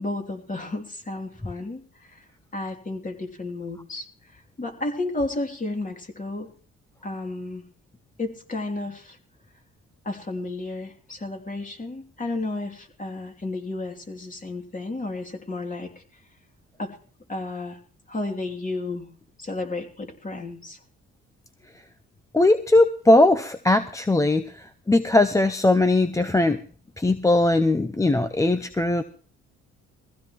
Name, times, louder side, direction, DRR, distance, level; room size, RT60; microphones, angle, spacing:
voice 1, 0.0-2.2 2.5-6.5 7.0-7.6 8.2-9.2 10.0-16.2 16.8-17.0 17.3-17.8 18.1-19.1 19.4-20.8, left 2 dB, 25° left, 3 dB, 2.9 m, -32 dB
voice 2, 22.3-26.6 27.0-29.0, left 2 dB, 10° left, 9 dB, 0.6 m, -20 dB
21.5 x 15.5 x 3.1 m, 0.42 s
cardioid pair, 90°, 30 cm